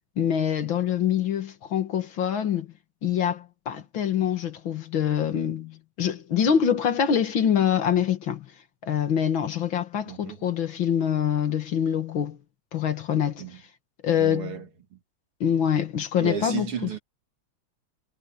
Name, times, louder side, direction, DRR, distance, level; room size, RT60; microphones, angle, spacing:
voice 1, 0.2-2.7 3.0-8.5 8.8-12.4 12.7-13.4 14.0-14.6 15.4-16.7, left 8 dB, 65° left, 2.3 m, -25 dB
voice 2, 10.1-10.5 13.4-13.6 14.2-15.0 16.2-17.0, right 8 dB, 85° right, 3.1 m, -34 dB
omnidirectional pair, 2.3 m